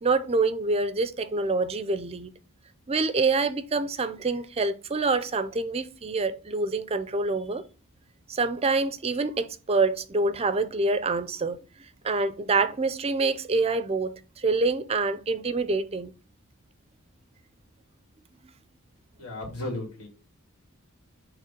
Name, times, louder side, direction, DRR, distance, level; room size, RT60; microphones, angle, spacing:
voice 1, 0.0-2.3 2.9-7.6 8.3-11.6 12.0-16.1, right 3 dB, 25° right, 0.4 m, -26 dB
voice 2, 19.2-20.1, left 1 dB, 85° left, 2.6 m, -34 dB
6.7 x 3.0 x 5.1 m
head